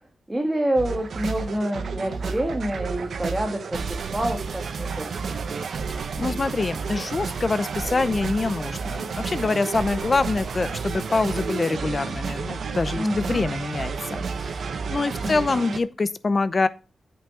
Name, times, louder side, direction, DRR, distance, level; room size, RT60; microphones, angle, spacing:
voice 1, 0.3-5.1 12.9-13.4 15.2-15.6, right 1 dB, 15° right, 1.5 m, -27 dB
sound 1, 0.8-15.8, right 5 dB, 70° right, 0.9 m, -31 dB
voice 2, 6.2-16.7, left 3 dB, 35° left, 0.7 m, -25 dB
8.3 x 6.3 x 4.7 m
wide cardioid pair, 105°, 0 cm